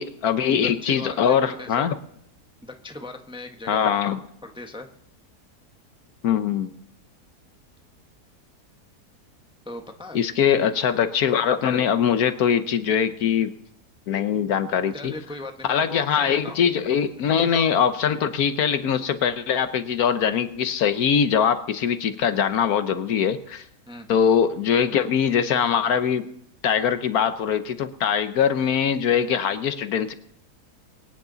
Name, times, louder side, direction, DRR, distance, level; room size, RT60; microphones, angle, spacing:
voice 1, 0.0-1.9 3.7-4.2 6.2-6.7 10.1-13.5 14.1-15.1 15.7-23.6 24.1-26.3 26.6-30.1, left 8 dB, 70° left, 11 dB, 1.3 m, -22 dB
voice 2, 0.6-1.9 2.6-3.9 4.4-4.9 9.6-10.2 14.9-16.6 17.2-17.5 23.9-24.1, left 2 dB, 5° right, 5 dB, 0.9 m, -38 dB
24.0 x 9.6 x 4.0 m, 0.71 s
omnidirectional pair, 1.7 m